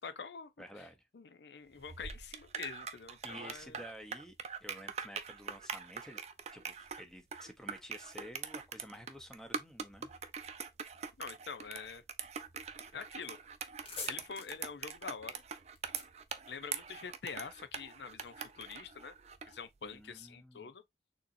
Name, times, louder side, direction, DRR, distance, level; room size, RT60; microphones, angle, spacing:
voice 1, 0.0-0.9 1.1-3.8 11.2-12.0 12.9-13.4 14.1-15.4 16.5-19.1 19.5-20.8, left 6 dB, 70° left, 0.6 m, -46 dB
voice 2, 0.6-1.0 3.2-4.3 4.6-6.2 6.5-10.1 19.8-20.7, equal, 5° left, 0.8 m, -51 dB
sound 1, 1.8-19.6, right 6 dB, 40° right, 0.5 m, -43 dB
sound 2, 13.7-17.2, left 4 dB, 35° left, 1.6 m, -48 dB
6.6 x 2.9 x 2.6 m
head